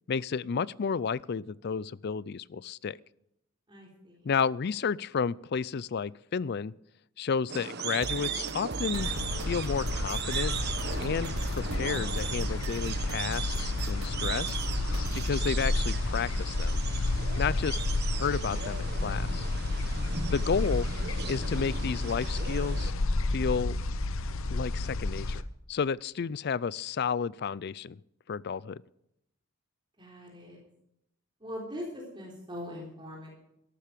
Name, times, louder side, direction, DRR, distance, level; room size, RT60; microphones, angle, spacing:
voice 1, 0.1-3.0 4.3-6.7 7.2-9.1 9.5-10.5 11.0-14.6 15.1-16.8 17.4-17.8 18.2-19.5 20.3-20.9 21.3-22.9 23.3-23.8 24.5-25.4 25.7-28.0 28.3-28.8, left 6 dB, 50° left, 22 dB, 0.4 m, -31 dB
voice 2, 3.7-4.3 30.0-30.6 31.4-33.3, left 1 dB, 25° right, -3 dB, 3.7 m, -42 dB
sound 1, 7.5-22.9, right 6 dB, 50° right, 1.1 m, -38 dB
sound 2, 8.0-15.4, right 3 dB, 75° right, 0.9 m, -40 dB
sound 3, 8.9-25.4, left 2 dB, 70° left, 0.8 m, -31 dB
13.5 x 12.5 x 5.1 m, 0.80 s
head